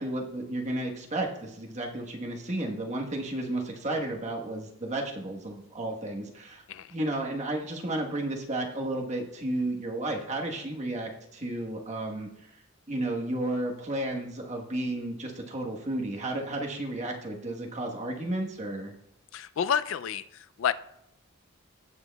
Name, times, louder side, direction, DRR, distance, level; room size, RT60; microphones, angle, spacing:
voice 1, 0.0-6.6 6.9-12.3 12.9-18.9, right 1 dB, 35° right, 0 dB, 1.3 m, -32 dB
voice 2, 19.3-20.7, left 8 dB, 65° left, 14 dB, 0.3 m, -29 dB
17.5 x 6.1 x 2.3 m, 0.77 s
head